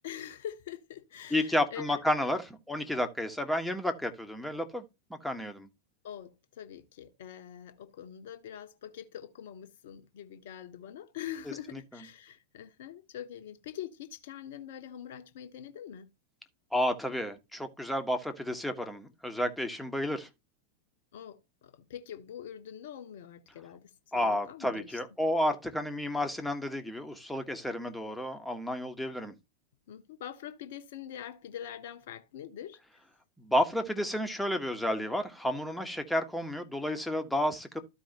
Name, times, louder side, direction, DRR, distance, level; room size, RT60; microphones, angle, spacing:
voice 1, 0.0-2.0 6.0-16.1 21.1-25.0 29.9-33.0, left 10 dB, 55° left, 1.1 m, -44 dB
voice 2, 1.3-4.8 5.1-5.7 11.7-11.8 16.7-20.3 24.1-29.3 33.4-37.8, left 1 dB, ahead, 1.4 m, -31 dB
14.0 x 4.8 x 2.9 m
figure-of-eight pair, 90°, 0 cm